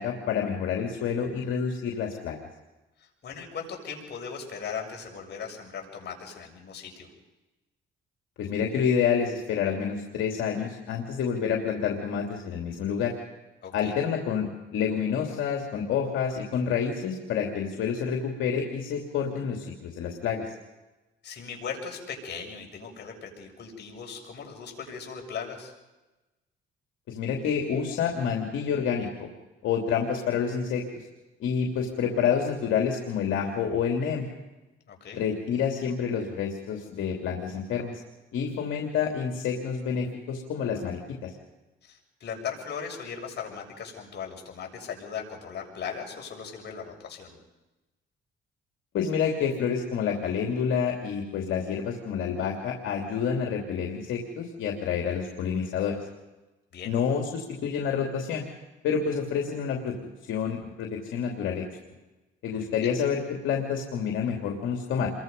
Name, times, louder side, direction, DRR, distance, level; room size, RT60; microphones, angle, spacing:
voice 1, 0.0-2.4 8.4-13.1 13.7-20.4 27.1-29.3 29.6-31.0 31.4-34.3 35.1-38.0 38.3-41.3 48.9-55.9 56.8-58.4 58.8-59.9 60.3-61.6 62.4-65.1, left 7 dB, 85° left, 1 dB, 3.0 m, -28 dB
voice 2, 3.0-7.1 13.6-14.0 21.2-25.7 34.9-35.2 41.8-47.4 56.7-57.0 62.5-62.9, left 6 dB, 60° left, 1 dB, 7.1 m, -38 dB
28.5 x 23.0 x 5.4 m, 1.1 s
cardioid pair, 90°, 20 cm